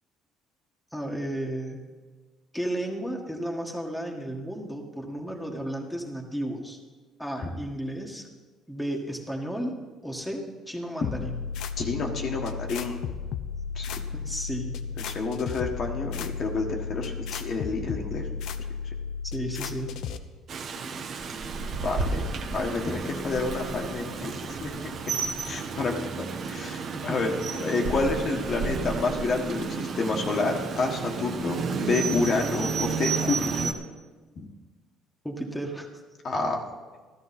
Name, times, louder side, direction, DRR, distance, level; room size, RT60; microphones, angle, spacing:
voice 1, 0.9-1.8 2.5-6.8 7.2-8.3 8.7-9.8 10.0-11.3 14.1-14.8 19.2-20.0 20.8-21.0 27.1-27.2 35.2-35.9, right 1 dB, ahead, 0 dB, 1.7 m, -33 dB
sound 1, 11.0-20.2, left 6 dB, 75° left, 0.8 m, -34 dB
voice 2, 11.8-13.0 13.7-14.1 15.0-18.3 21.8-22.3 22.5-24.8 25.4-27.3 27.6-33.7 36.2-36.6, left 3 dB, 45° left, 1 dB, 1.5 m, -29 dB
Rain, 20.5-33.7, right 5 dB, 50° right, 1.2 m, -31 dB
13.5 x 13.5 x 4.2 m, 1.4 s
cardioid pair, 115°, 0 cm